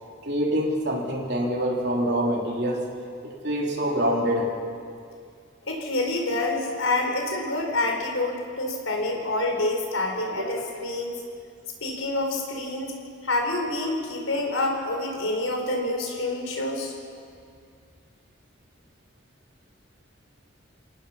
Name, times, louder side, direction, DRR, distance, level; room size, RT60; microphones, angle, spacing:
voice 1, 0.2-2.9 3.2-4.5 10.4-10.6, equal, 55° right, -1 dB, 3.5 m, -25 dB
voice 2, 5.7-11.1 11.8-13.0 13.2-16.9, left 2 dB, 85° left, 2 dB, 4.5 m, -27 dB
28.5 x 17.5 x 5.8 m, 2.3 s
head